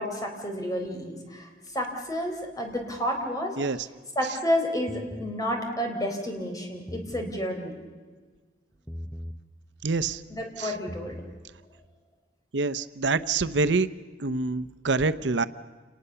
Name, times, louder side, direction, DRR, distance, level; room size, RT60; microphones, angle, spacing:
voice 1, 0.0-3.6 4.2-7.7 10.3-11.2, equal, 20° left, 3 dB, 3.9 m, -30 dB
sound 1, 4.9-5.4 6.7-7.4 8.9-9.4 10.7-11.4, equal, ahead, 0.7 m, -39 dB
voice 2, 9.8-10.2 10.6-10.7 12.5-13.9 14.2-15.5, right 3 dB, 85° right, 13 dB, 0.8 m, -26 dB
28.5 x 19.5 x 6.9 m, 1.4 s
head